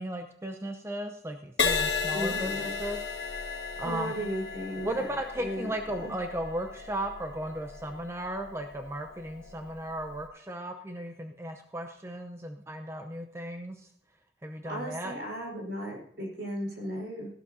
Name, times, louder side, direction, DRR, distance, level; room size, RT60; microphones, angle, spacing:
voice 1, 0.0-3.0 3.3-3.4 3.8-4.2 4.8-13.9 14.4-15.1, right 1 dB, 15° right, 5 dB, 0.7 m, -36 dB
Crash cymbal, 1.6-9.2 9.9-10.2, left 5 dB, 75° left, 1.8 m, -34 dB
voice 2, 2.1-2.7 3.8-6.1 14.6-17.3, equal, 70° right, -1 dB, 4.8 m, -36 dB
16.0 x 12.0 x 2.8 m, 0.63 s
head